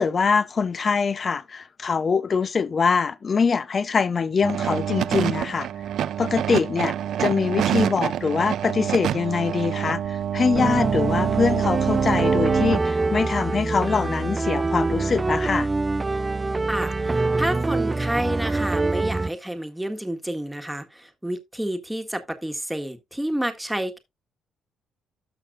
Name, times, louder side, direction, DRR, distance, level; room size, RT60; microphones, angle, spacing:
voice 1, 0.0-5.7 6.2-15.7, left 5 dB, 40° left, 0.7 m, -23 dB
sound 1, 4.4-12.8, right 10 dB, 75° right, 0.5 m, -26 dB
sound 2, 10.6-19.3, right 3 dB, 20° right, 0.4 m, -25 dB
voice 2, 16.7-24.0, right 1 dB, 5° right, 1.6 m, -29 dB
13.0 x 5.7 x 2.5 m
cardioid pair, 90°, 0 cm